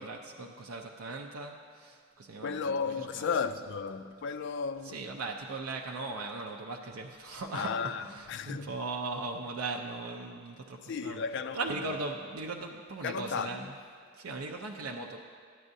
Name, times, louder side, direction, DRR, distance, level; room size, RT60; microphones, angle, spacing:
voice 1, 0.0-3.3 4.8-11.2 11.5-13.8 14.1-15.2, right 3 dB, 90° right, 0.5 m, -38 dB
voice 2, 2.4-5.0 7.5-8.7 10.8-11.6 13.0-13.7, left 5 dB, 55° left, 0.4 m, -34 dB
13.5 x 9.8 x 2.7 m
head